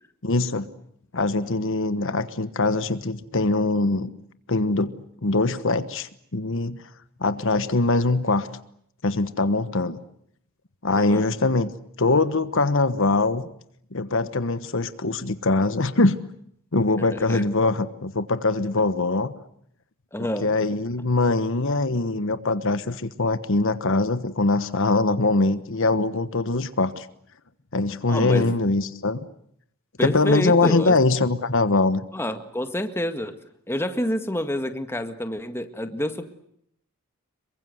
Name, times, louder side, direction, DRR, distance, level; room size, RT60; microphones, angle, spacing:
voice 1, 0.2-0.7 1.1-4.1 4.5-5.0 5.2-6.8 7.2-8.5 9.0-10.0 10.8-11.7 12.0-13.5 13.9-16.2 16.7-19.3 20.4-27.1 27.7-29.2 30.0-32.0, left 3 dB, 60° left, 12 dB, 1.2 m, -22 dB
voice 2, 11.0-11.3 17.1-17.4 20.1-20.6 28.1-28.6 30.0-31.0 32.1-33.4 33.7-36.3, left 1 dB, 10° left, 8 dB, 1.9 m, -28 dB
27.5 x 23.5 x 8.0 m, 0.71 s
head